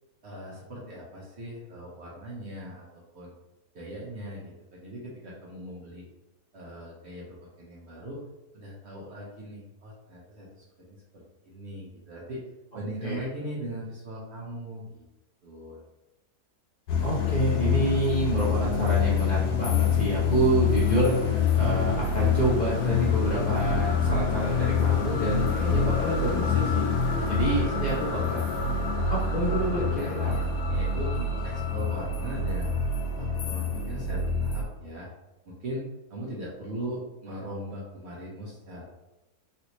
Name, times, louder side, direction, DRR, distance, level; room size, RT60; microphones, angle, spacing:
voice 1, 0.2-3.3 3.7-6.0 6.5-8.2 8.5-12.4 12.7-15.1 15.4-15.8 27.1-28.3 29.8-32.8 33.2-35.1 35.4-38.8, right 1 dB, 55° right, -4 dB, 0.9 m, -39 dB
sound 1, 16.9-34.6, left 5 dB, 85° left, 1.2 m, -26 dB
voice 2, 17.0-26.9 27.3-28.4 29.1-30.3, right 2 dB, 40° left, -8 dB, 0.6 m, -28 dB
3.2 x 2.7 x 2.9 m, 0.98 s
omnidirectional pair, 1.7 m